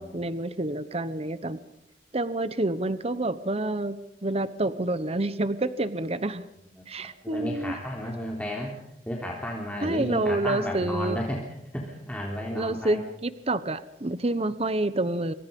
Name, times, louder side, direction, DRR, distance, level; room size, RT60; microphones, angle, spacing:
voice 1, 0.0-1.6 2.1-6.4 6.9-7.8 9.8-11.2 12.5-15.3, right 2 dB, 35° right, 14 dB, 1.0 m, -28 dB
voice 2, 7.2-8.7 9.1-11.4 11.7-13.0, equal, 10° left, -1 dB, 3.5 m, -33 dB
27.0 x 25.0 x 5.4 m, 0.80 s
head